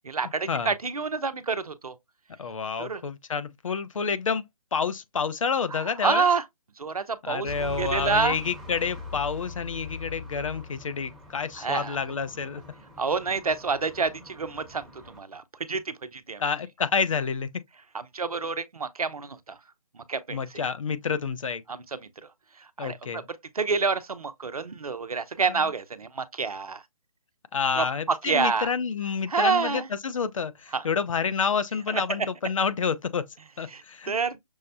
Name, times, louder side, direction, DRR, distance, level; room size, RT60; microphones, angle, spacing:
voice 1, 0.1-1.9 2.8-3.0 6.0-6.4 6.8-8.4 11.6-12.0 13.0-14.8 15.2-15.4 15.7-16.4 18.1-19.6 20.1-20.4 21.7-22.0 22.8-23.0 23.6-26.8 27.8-28.7 29.3-29.9 30.7-30.8 33.7-33.8 34.1-34.4, right 4 dB, 85° right, 0.7 m, -27 dB
voice 2, 2.4-4.4 4.7-6.3 7.2-12.6 16.4-17.5 20.3-21.6 22.8-23.2 25.5-25.7 27.5-33.2 33.6-34.1, left 6 dB, 65° left, 0.6 m, -29 dB
sound 1, 7.5-15.2, left 2 dB, ahead, 0.9 m, -41 dB
6.3 x 2.1 x 2.6 m
figure-of-eight pair, 145°, 18 cm